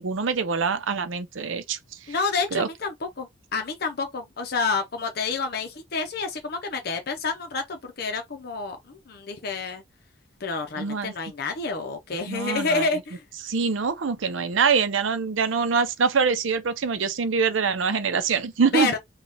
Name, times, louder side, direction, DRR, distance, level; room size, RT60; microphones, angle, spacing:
voice 1, 0.0-1.8 2.5-2.7 10.8-11.1 12.3-12.9 13.4-18.9, right 5 dB, 85° right, 0.6 m, -24 dB
voice 2, 2.1-9.8 10.4-13.2 18.7-19.0, left 4 dB, 55° left, 0.6 m, -29 dB
4.0 x 2.3 x 3.4 m
head